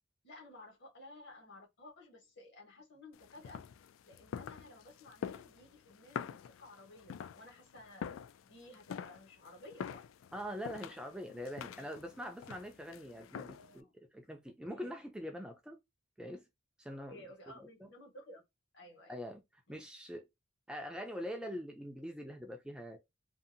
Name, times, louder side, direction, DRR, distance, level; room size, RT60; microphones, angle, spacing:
voice 1, 0.2-3.6 4.1-8.1 8.4-10.0 13.3-13.9 14.7-14.9 17.1-18.4 18.7-19.2 19.7-19.8, left 1 dB, 60° left, 1.3 m, -55 dB
sound 1, 3.1-13.8, left 7 dB, 85° left, 0.3 m, -46 dB
voice 2, 10.3-13.9 14.1-15.8 16.2-16.5 16.8-17.2 17.6-17.7 19.1-19.4 19.7-20.3 20.7-23.0, equal, 5° right, 0.3 m, -43 dB
2.7 x 2.4 x 2.5 m
head